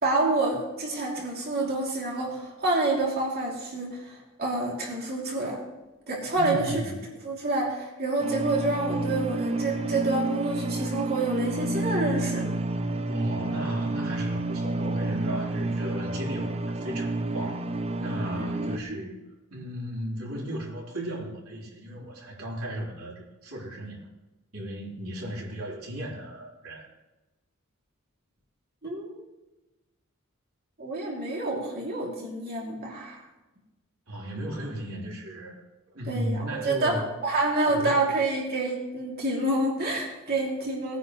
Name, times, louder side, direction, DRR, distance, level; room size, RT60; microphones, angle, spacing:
voice 1, 0.0-5.6 6.1-6.8 7.2-12.4 18.4-19.0 28.8-29.2 30.8-33.2 36.1-36.9 37.2-41.0, right 2 dB, 50° right, -3 dB, 2.8 m, -28 dB
voice 2, 6.3-7.0 13.1-19.2 19.5-24.0 24.5-26.9 34.1-35.6 35.9-37.1 37.7-38.0, right 1 dB, 85° right, -3 dB, 3.8 m, -35 dB
sound 1, 8.2-18.8, right 2 dB, 30° right, 0.6 m, -30 dB
19.5 x 9.9 x 3.1 m, 1.1 s
head